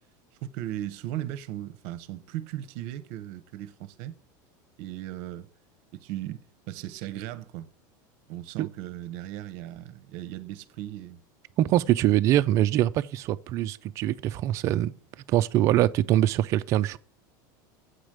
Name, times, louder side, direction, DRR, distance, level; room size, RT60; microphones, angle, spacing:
voice 1, 0.4-4.2 4.8-5.5 5.9-7.7 8.3-11.2, right 13 dB, 45° right, 0.8 m, -37 dB
voice 2, 11.6-14.9 15.3-17.0, right 13 dB, 30° right, 0.4 m, -23 dB
8.0 x 5.0 x 7.5 m
supercardioid pair, 175°, 11 cm